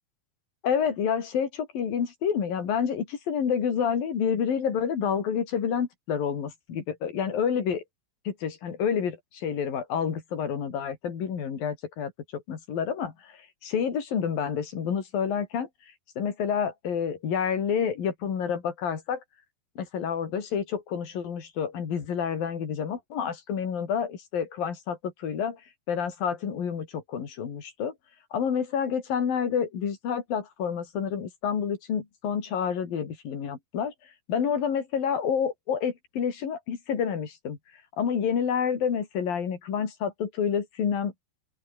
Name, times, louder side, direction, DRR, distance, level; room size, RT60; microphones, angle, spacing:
voice 1, 0.6-7.8 8.2-15.7 16.2-19.2 19.8-25.6 25.9-27.9 28.3-33.9 34.3-37.6 38.0-41.1, left 7 dB, 60° left, 5.0 m, -29 dB
open air
omnidirectional pair, 4.8 m